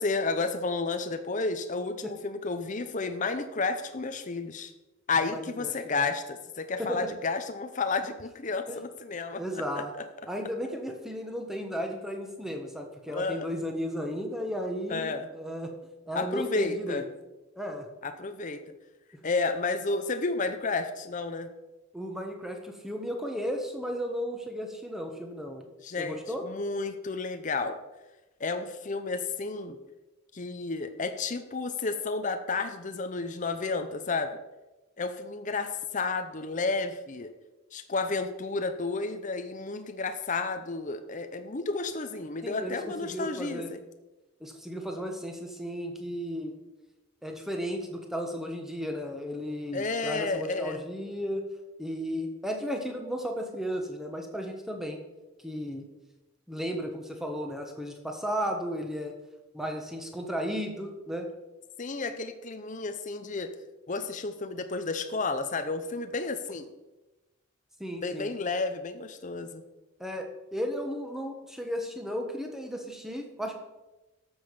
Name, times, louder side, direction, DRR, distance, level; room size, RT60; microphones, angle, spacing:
voice 1, 0.0-4.7 5.1-9.6 13.1-13.5 14.9-15.3 16.1-17.0 18.0-18.6 19.2-21.5 25.8-27.8 28.4-29.8 30.3-34.4 35.0-37.3 37.7-43.8 49.7-50.8 61.8-63.5 63.9-66.7 68.0-69.6, left 3 dB, 35° left, 8 dB, 0.7 m, -31 dB
voice 2, 5.3-5.7 6.8-7.0 8.7-8.8 9.3-9.9 10.3-15.7 16.1-17.0 17.6-17.9 21.9-25.6 26.0-26.4 42.4-43.7 44.4-46.6 47.2-51.4 51.8-55.0 55.4-55.9 56.5-59.1 59.5-61.3 67.8-68.3 70.0-73.5, equal, ahead, 3 dB, 1.3 m, -34 dB
12.5 x 7.1 x 5.3 m, 1.1 s
head